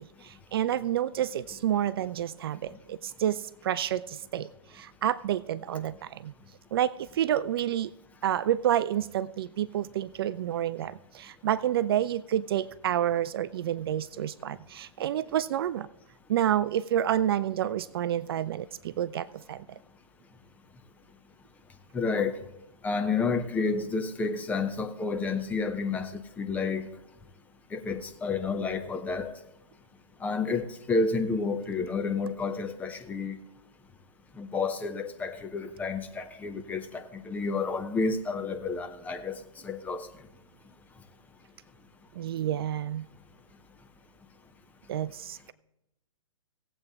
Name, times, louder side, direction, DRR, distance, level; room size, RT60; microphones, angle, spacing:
voice 1, 0.0-6.3 6.7-7.9 8.2-15.9 16.3-19.6 42.2-43.1 44.9-45.5, right 11 dB, 45° right, 0.4 m, -29 dB
voice 2, 21.9-22.3 22.8-26.9 27.7-29.3 30.2-33.4 34.4-39.4 39.6-40.1, left 4 dB, 10° left, 0.6 m, -30 dB
18.0 x 8.0 x 3.5 m
hypercardioid pair, 140°, 18 cm